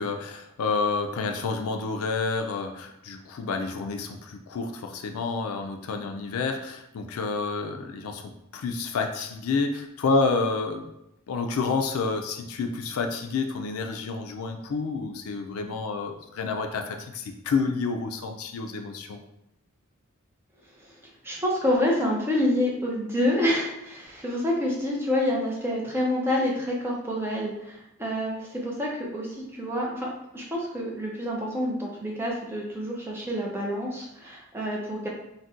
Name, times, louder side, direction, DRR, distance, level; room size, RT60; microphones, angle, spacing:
voice 1, 0.0-10.9 11.3-19.2, left 4 dB, 75° left, 5 dB, 0.4 m, -29 dB
voice 2, 21.2-35.1, left 1 dB, 10° right, -3 dB, 0.5 m, -27 dB
2.6 x 2.1 x 3.6 m, 0.82 s
head